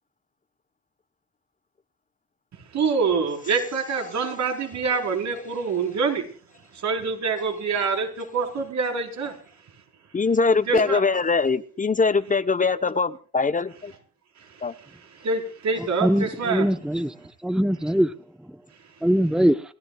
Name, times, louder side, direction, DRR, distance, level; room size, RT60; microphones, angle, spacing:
voice 1, 2.7-6.3 6.7-9.3 10.7-11.0 14.4-14.6 15.2-16.7, right 5 dB, 65° right, 4.5 m, -26 dB
voice 2, 10.1-13.9 14.6-14.7, left 4 dB, 25° left, 0.9 m, -22 dB
voice 3, 16.5-17.1 17.4-18.1 19.0-19.5, equal, ahead, 0.9 m, -21 dB
28.5 x 13.0 x 2.3 m
cardioid pair, 90°, 30 cm